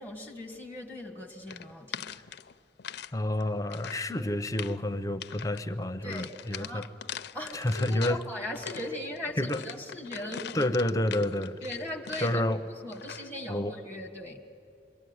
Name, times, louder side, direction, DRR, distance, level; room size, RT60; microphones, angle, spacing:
voice 1, 0.0-2.2 4.1-4.3 6.0-6.9 7.3-10.7 11.6-12.4 12.8-14.4, left 1 dB, 10° right, 1.5 m, -39 dB
sound 1, 1.5-3.1 3.4-4.1 4.4-4.8 5.2-5.6 6.1-8.2 8.6-12.5 12.9-13.3, left 8 dB, 65° left, 0.6 m, -42 dB
voice 2, 3.1-6.8 7.5-8.2 9.4-9.6 10.5-11.6 12.2-12.6 13.5-13.7, left 1 dB, 20° left, 0.8 m, -29 dB
27.0 x 22.5 x 9.5 m
head